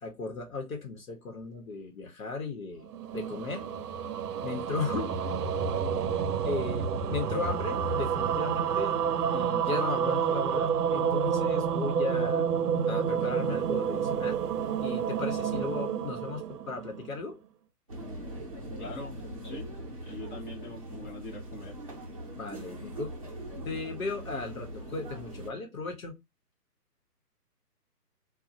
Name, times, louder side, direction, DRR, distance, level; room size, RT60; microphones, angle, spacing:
voice 1, 0.0-2.9 3.1-3.7 4.4-5.3 5.7-5.9 6.4-8.9 9.3-12.5 12.9-14.4 14.8-17.3 22.4-23.1 23.6-26.2, left 4 dB, 60° left, 1.1 m, -36 dB
sound 1, 2.8-17.3, right 7 dB, 75° right, 0.6 m, -29 dB
sound 2, 17.9-25.5, right 1 dB, 25° right, 0.6 m, -41 dB
voice 2, 18.8-19.2 19.4-21.7, left 2 dB, 30° left, 1.2 m, -43 dB
4.1 x 2.3 x 2.6 m
hypercardioid pair, 160°, 48 cm